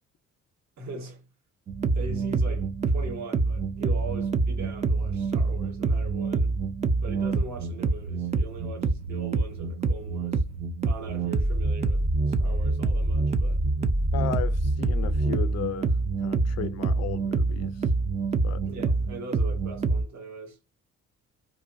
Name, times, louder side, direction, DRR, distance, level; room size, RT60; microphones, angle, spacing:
voice 1, 0.8-1.3 1.9-6.5 7.0-10.4 10.8-13.6 18.6-20.6, right 3 dB, 65° right, 1.4 m, -40 dB
sound 1, 1.7-20.0, right 3 dB, 25° right, 0.4 m, -26 dB
voice 2, 14.1-17.8 18.4-18.6, left 10 dB, 60° left, 0.5 m, -35 dB
2.5 x 2.3 x 2.5 m
cardioid pair, 90°, 30 cm